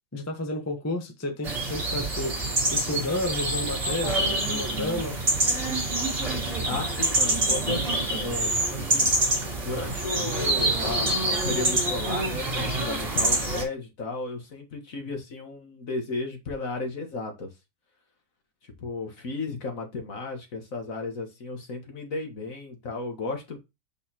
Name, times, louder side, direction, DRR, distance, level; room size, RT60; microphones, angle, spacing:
voice 1, 0.1-2.3 2.7-5.2, left 1 dB, 10° left, 0.9 m, -31 dB
sound 1, 1.4-13.6, right 2 dB, 35° right, 2.0 m, -26 dB
voice 2, 6.7-9.1 9.6-17.5 18.6-23.6, left 3 dB, 50° left, 1.9 m, -34 dB
6.4 x 5.3 x 3.0 m
omnidirectional pair, 1.8 m